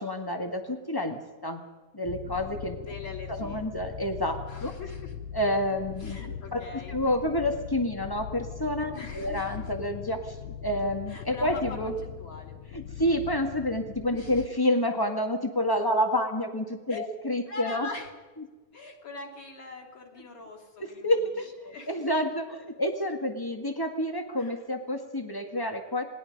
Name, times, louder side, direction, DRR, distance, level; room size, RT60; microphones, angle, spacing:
voice 1, 0.0-1.6 1.9-2.8 3.4-4.7 5.3-6.6 6.9-10.4 10.6-11.9 12.7-17.9 20.8-26.0, left 1 dB, 20° left, 5 dB, 0.5 m, -29 dB
sound 1, 2.1-14.5, left 9 dB, 75° left, 1.7 m, -40 dB
voice 2, 2.8-3.7 4.5-5.1 6.0-7.0 8.9-9.7 11.1-12.6 14.1-14.4 16.9-17.1 17.5-18.1 18.7-21.3 21.7-22.1 24.4-24.6, left 3 dB, 35° left, -1 dB, 3.8 m, -42 dB
28.5 x 20.0 x 5.4 m, 1.2 s
omnidirectional pair, 3.8 m